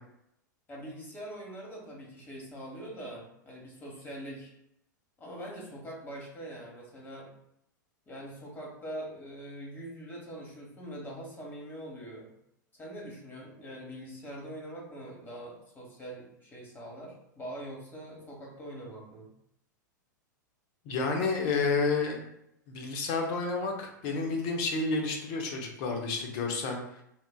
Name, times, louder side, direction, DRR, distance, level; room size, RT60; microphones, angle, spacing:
voice 1, 0.7-4.5 5.2-7.3 8.1-12.3 12.7-19.3 24.1-24.3, right 1 dB, 20° left, -2 dB, 1.1 m, -43 dB
voice 2, 20.9-22.2 22.7-26.8, left 4 dB, 45° left, 2 dB, 0.7 m, -30 dB
3.7 x 2.5 x 2.2 m, 0.78 s
figure-of-eight pair, 95°, 10 cm